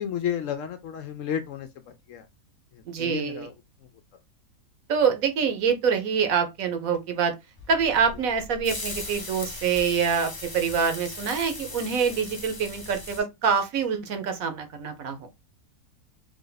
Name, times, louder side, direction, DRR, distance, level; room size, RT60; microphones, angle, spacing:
voice 1, 0.0-1.7 2.1-2.2 2.7-3.5, left 9 dB, 70° left, 0.8 m, -32 dB
voice 2, 2.9-3.5 4.9-7.3 7.7-15.3, right 6 dB, 70° right, 1.2 m, -25 dB
sound 1, 7.6-13.2, left 2 dB, 30° left, 0.4 m, -38 dB
3.4 x 2.5 x 3.8 m
omnidirectional pair, 1.6 m